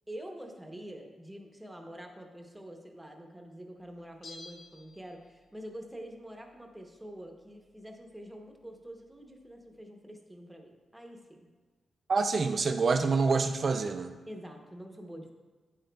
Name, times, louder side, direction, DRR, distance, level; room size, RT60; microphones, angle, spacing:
voice 1, 0.1-11.4 14.3-15.3, equal, 5° right, 2 dB, 0.8 m, -46 dB
Bell, 4.2-5.6 5.9-6.0, left 2 dB, 50° left, 1.0 m, -51 dB
voice 2, 12.1-14.2, right 4 dB, 35° right, 7 dB, 0.3 m, -27 dB
9.2 x 8.9 x 2.2 m, 1.4 s
wide cardioid pair, 170°, 0 cm